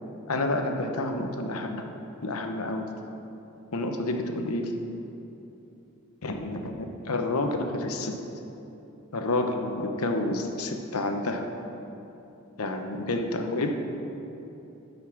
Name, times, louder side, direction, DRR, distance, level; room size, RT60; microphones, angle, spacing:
voice 1, 0.3-1.9 2.2-2.9 3.7-4.7 6.2-8.2 9.1-11.5 12.6-13.8, left 2 dB, 85° left, 4 dB, 0.9 m, -29 dB
12.0 x 5.6 x 6.0 m, 3.0 s
head